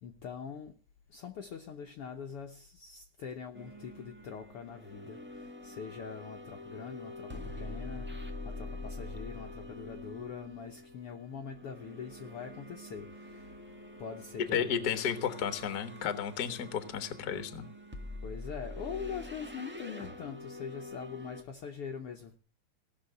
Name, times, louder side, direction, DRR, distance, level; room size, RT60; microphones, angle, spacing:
voice 1, 0.0-0.8 1.1-13.6 14.0-15.3 18.2-22.4, left 6 dB, 65° left, 1.6 m, -43 dB
sound 1, 3.5-21.4, left 1 dB, 10° right, 0.6 m, -45 dB
voice 2, 14.5-17.7, left 8 dB, 45° left, 1.3 m, -33 dB
17.5 x 6.6 x 7.8 m
omnidirectional pair, 3.4 m